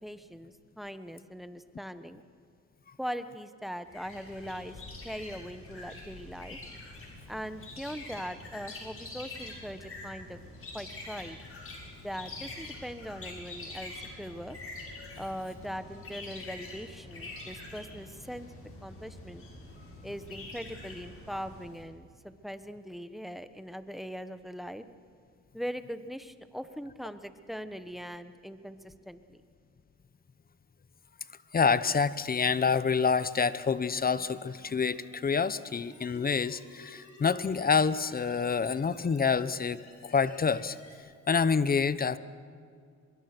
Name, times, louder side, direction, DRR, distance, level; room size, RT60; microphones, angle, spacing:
voice 1, 0.0-2.2 3.0-4.8 5.0-6.6 7.3-10.4 10.7-11.4 12.0-14.6 15.2-18.5 18.8-19.4 20.0-24.8 25.5-29.4, equal, ahead, 11 dB, 1.2 m, -41 dB
sound 1, 3.9-21.9, left 2 dB, 45° left, 7.0 m, -45 dB
voice 2, 31.5-40.8 41.3-42.2, left 5 dB, 30° left, 15 dB, 0.9 m, -27 dB
sound 2, 33.0-41.0, left 2 dB, 65° left, 7.2 m, -54 dB
24.5 x 22.5 x 6.1 m, 2.2 s
cardioid pair, 90°, 30 cm